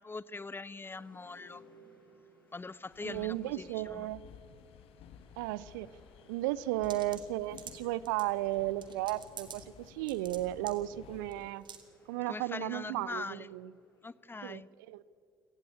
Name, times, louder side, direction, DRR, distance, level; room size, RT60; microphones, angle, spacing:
voice 1, 0.0-1.6 2.5-4.1 12.3-13.5 14.0-14.7, left 3 dB, 20° left, 20 dB, 0.7 m, -42 dB
sound 1, 0.7-14.4, equal, 85° left, 4.5 m, -64 dB
sound 2, 2.9-11.5, left 9 dB, 55° left, 1.2 m, -55 dB
voice 2, 3.0-4.2 5.4-5.9 6.3-11.6 12.1-13.7 14.4-14.6 14.9-15.0, right 16 dB, 70° right, 20 dB, 0.7 m, -34 dB
sound 3, 6.8-8.3 8.8-9.6 9.9-10.4 10.7-10.8 11.3-11.4 11.7-11.8, right 7 dB, 45° right, 2.8 m, -47 dB
29.0 x 18.5 x 8.7 m, 2.4 s
figure-of-eight pair, 50°, 11 cm